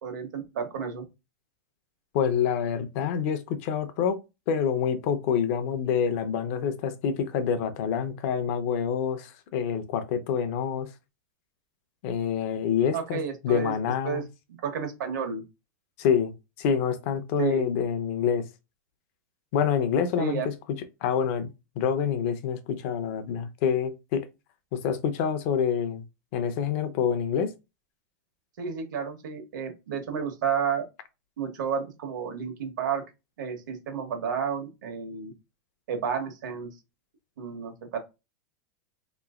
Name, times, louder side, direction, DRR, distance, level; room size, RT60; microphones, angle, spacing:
voice 1, 0.0-1.0 12.9-13.7 14.0-14.2 14.6-15.4 17.4-17.7 20.2-20.5 28.6-30.9 31.4-33.0 33.4-35.3 35.9-36.7 37.4-38.0, right 7 dB, 80° right, 1.2 m, -31 dB
voice 2, 2.1-4.2 4.5-10.9 12.0-14.2 16.0-18.5 19.5-20.5 21.0-21.5 21.8-24.3 24.7-26.0 26.3-27.5, left 7 dB, 45° left, 0.6 m, -27 dB
3.6 x 3.0 x 2.4 m
supercardioid pair, 165°, 10 cm